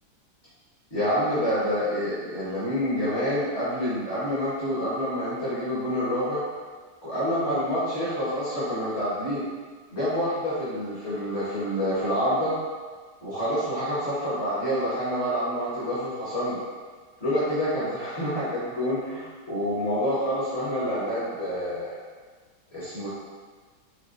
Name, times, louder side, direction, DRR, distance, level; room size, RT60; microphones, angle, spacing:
voice 1, 0.9-6.4 7.0-9.4 9.9-12.5 13.2-16.6 17.2-21.9 22.7-23.1, equal, 40° left, -11 dB, 1.5 m, -27 dB
4.5 x 4.3 x 2.5 m, 1.5 s
omnidirectional pair, 1.9 m